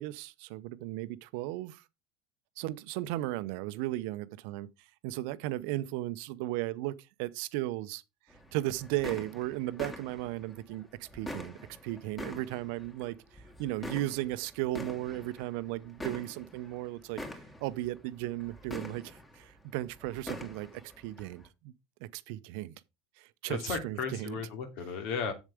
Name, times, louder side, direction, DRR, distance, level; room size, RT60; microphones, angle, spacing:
voice 1, 0.0-1.8 2.6-6.9 7.2-8.0 8.5-17.2 17.6-20.7 21.0-21.7 22.0-22.8 23.2-24.4, right 16 dB, 60° right, 0.7 m, -36 dB
sound 1, 8.3-21.5, left 1 dB, 15° left, 2.7 m, -46 dB
voice 2, 23.5-25.3, left 5 dB, 60° left, 2.7 m, -35 dB
7.6 x 7.3 x 4.9 m
hypercardioid pair, 75°, 0 cm